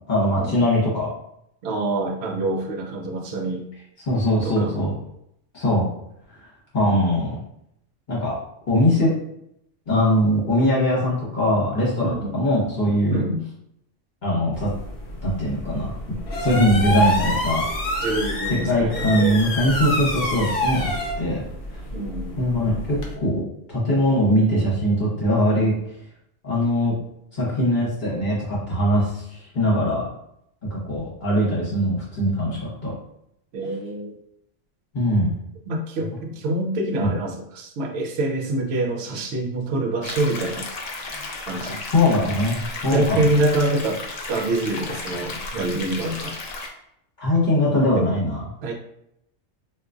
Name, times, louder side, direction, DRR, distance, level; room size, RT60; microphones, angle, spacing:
voice 1, 0.1-1.1 4.1-4.9 5.5-5.9 6.7-7.4 8.1-8.4 8.7-9.1 9.9-13.2 14.2-14.7 15.2-15.9 16.4-17.7 18.6-20.9 21.2-21.5 22.4-23.4 23.7-25.7 26.4-26.9 27.3-30.1 30.7-32.9 34.9-35.3 36.1-36.2 37.0-37.1 41.9-43.3 47.2-48.5, left 1 dB, 40° left, -7 dB, 1.2 m, -21 dB
voice 2, 1.6-3.6 4.4-4.7 6.8-7.1 12.0-12.5 13.1-13.4 18.0-19.4 21.9-22.4 33.5-34.2 35.7-40.7 41.5-41.8 42.9-44.0 44.3-46.4 47.7-48.1 48.6-48.7, right 2 dB, 65° right, 2 dB, 0.8 m, -26 dB
sound 1, 14.5-23.1, left 1 dB, 55° left, 0.8 m, -27 dB
sound 2, 40.0-46.7, left 3 dB, 80° left, 0.3 m, -34 dB
3.8 x 2.4 x 2.4 m, 0.76 s
omnidirectional pair, 1.3 m